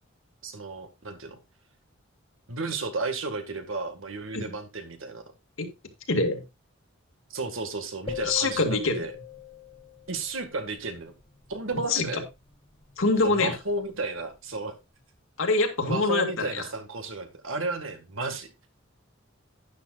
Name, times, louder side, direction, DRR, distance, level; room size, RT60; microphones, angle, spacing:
voice 1, 0.4-1.4 2.5-5.2 7.3-9.1 10.1-11.1 11.5-12.2 13.2-14.7 15.8-18.5, right 3 dB, 75° right, 7 dB, 1.9 m, -33 dB
voice 2, 6.1-6.4 8.2-9.1 11.7-12.2 13.0-13.6 15.4-16.6, left 3 dB, 75° left, 4 dB, 2.1 m, -25 dB
sound 1, 8.1-10.3, left 10 dB, 30° left, 1.0 m, -39 dB
11.5 x 10.0 x 2.5 m, 0.23 s
head